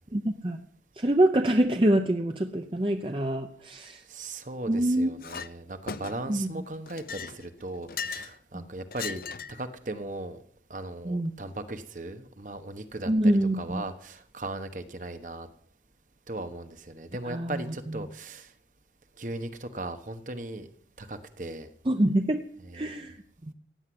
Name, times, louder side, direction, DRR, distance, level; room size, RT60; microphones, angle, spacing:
voice 1, 0.1-0.6 0.9-4.0 4.7-5.1 6.3-6.5 8.5-8.6 11.0-11.3 13.1-13.8 17.2-18.1 21.9-22.4 22.7-23.2 23.4-23.5, right 1 dB, 30° right, 6 dB, 0.7 m, -25 dB
voice 2, 4.1-9.2 9.5-10.4 10.7-15.5 16.3-18.5 19.2-20.7 21.0-21.7 22.6-23.1, right 2 dB, 45° right, 9 dB, 1.2 m, -38 dB
Chink clink, 5.2-5.5 5.9-6.4 6.9-8.4 8.9-9.6, left 6 dB, 50° left, 0.5 m, -37 dB
16.0 x 9.7 x 7.8 m, 0.65 s
head